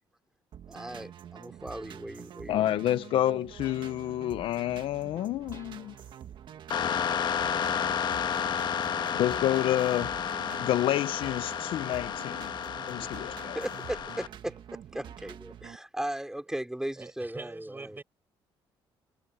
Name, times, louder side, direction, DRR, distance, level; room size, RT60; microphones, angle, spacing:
sound 1, 0.5-15.8, right 9 dB, 60° right, 1.6 m, -46 dB
voice 1, 0.7-2.7 13.0-13.1 13.5-18.0, right 1 dB, 5° right, 3.0 m, -37 dB
voice 2, 2.5-5.9 9.2-10.1 10.6-12.5 12.9-13.6, left 13 dB, 75° left, 0.6 m, -29 dB
sound 2, 3.6-4.4 5.5-6.3 7.4-8.0 9.0-9.7, left 5 dB, 35° left, 5.1 m, -56 dB
sound 3, 6.7-14.3, left 8 dB, 55° left, 1.3 m, -31 dB
voice 3, 17.0-18.0, right 3 dB, 20° right, 4.7 m, -43 dB
cardioid pair, 110°, 9 cm